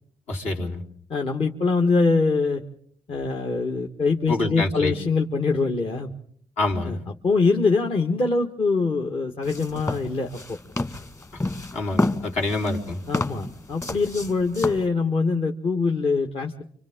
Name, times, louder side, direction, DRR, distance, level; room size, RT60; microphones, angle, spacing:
voice 1, 0.3-0.8 4.3-4.9 6.6-7.0 11.7-13.0, left 2 dB, 70° left, -1 dB, 3.3 m, -26 dB
voice 2, 1.1-2.6 3.1-6.1 6.8-7.0 7.2-10.6 13.1-16.6, left 4 dB, 50° left, 2 dB, 1.6 m, -23 dB
sound 1, 9.4-14.9, left 2 dB, 25° left, 1.7 m, -30 dB
29.5 x 25.5 x 3.7 m, 0.62 s
supercardioid pair, 60°, 12 cm